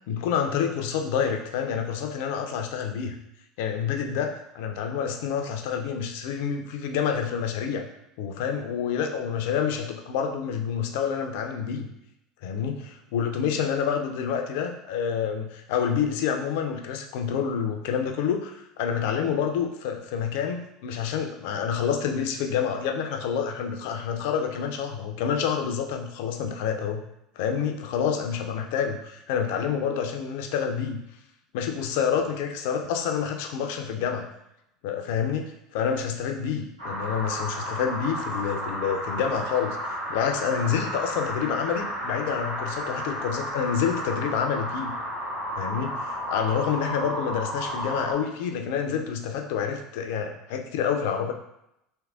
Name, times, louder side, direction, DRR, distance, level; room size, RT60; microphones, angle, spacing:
voice 1, 0.1-3.2 3.6-7.8 8.2-11.9 12.4-27.0 27.4-31.0 31.5-34.3 34.8-44.9 45.5-51.3, left 7 dB, 65° left, 4 dB, 0.4 m, -28 dB
sound 1, 36.8-48.1, equal, 80° right, 1.2 m, -32 dB
3.5 x 2.8 x 2.3 m, 0.82 s
figure-of-eight pair, 70°, 0 cm